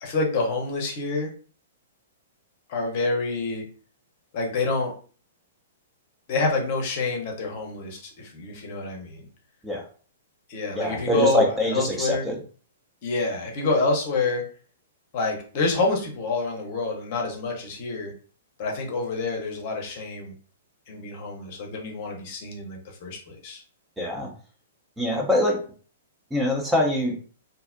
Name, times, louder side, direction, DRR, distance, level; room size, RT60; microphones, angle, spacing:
voice 1, 0.0-1.3 2.7-3.6 4.3-4.9 6.3-9.2 10.5-12.3 13.0-14.4 15.1-18.1 18.6-20.3 20.9-23.6, left 3 dB, 45° left, 1 dB, 0.7 m, -27 dB
voice 2, 10.8-12.4 24.0-24.3 25.0-25.6 26.3-27.1, left 1 dB, 5° right, -1 dB, 0.5 m, -24 dB
2.6 x 2.0 x 2.5 m, 0.41 s
figure-of-eight pair, 110°, 0 cm